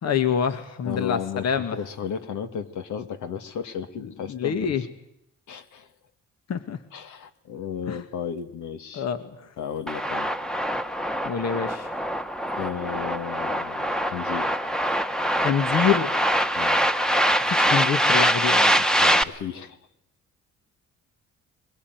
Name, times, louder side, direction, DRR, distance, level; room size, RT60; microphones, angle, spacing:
voice 1, 0.0-1.8 4.0-4.8 6.5-6.8 7.9-8.0 8.9-9.5 11.2-11.9 15.4-16.1 17.5-18.7, left 7 dB, 60° left, 9 dB, 1.8 m, -26 dB
voice 2, 0.8-4.9 5.5-5.9 6.9-9.1 9.6-10.4 12.6-14.5 16.5-16.8 19.0-19.8, left 7 dB, 75° left, 9 dB, 2.2 m, -34 dB
sound 1, 9.9-19.2, equal, ahead, 1.3 m, -23 dB
23.0 x 22.0 x 9.4 m, 0.79 s
cardioid pair, 90°, 30 cm